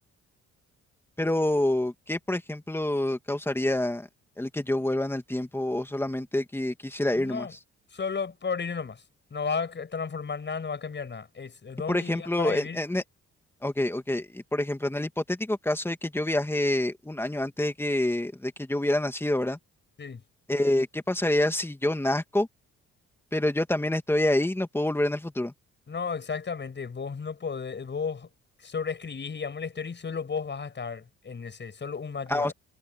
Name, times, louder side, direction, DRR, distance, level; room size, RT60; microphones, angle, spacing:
voice 1, 1.2-4.1 4.4-7.5 11.9-13.0 13.6-19.6 20.5-22.5 23.3-25.5 32.3-32.5, left 1 dB, 10° left, 2.4 m, -27 dB
voice 2, 7.1-7.5 7.9-9.0 9.3-12.8 20.0-20.2 25.9-28.3 28.6-32.5, left 5 dB, 35° left, 6.7 m, -33 dB
cardioid pair, 90°, 30 cm